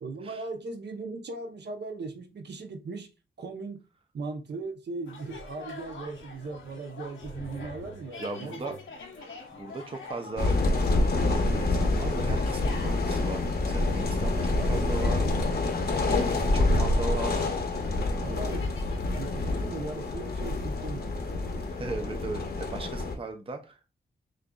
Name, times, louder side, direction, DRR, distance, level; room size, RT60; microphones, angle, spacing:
voice 1, 0.0-3.1 3.4-3.8 4.1-8.8 14.3-15.7 16.7-17.5 18.2-21.4, right 3 dB, 60° right, 0.8 m, -39 dB
sound 1, 5.1-19.3, left 3 dB, 85° left, 1.0 m, -46 dB
voice 2, 8.2-8.8 9.2-10.6 11.1-15.2 16.1-17.3 21.7-23.9, right 3 dB, 30° right, 0.6 m, -37 dB
sound 2, 10.4-23.2, left 2 dB, 55° left, 0.9 m, -27 dB
6.3 x 2.6 x 2.3 m
wide cardioid pair, 95°, 20 cm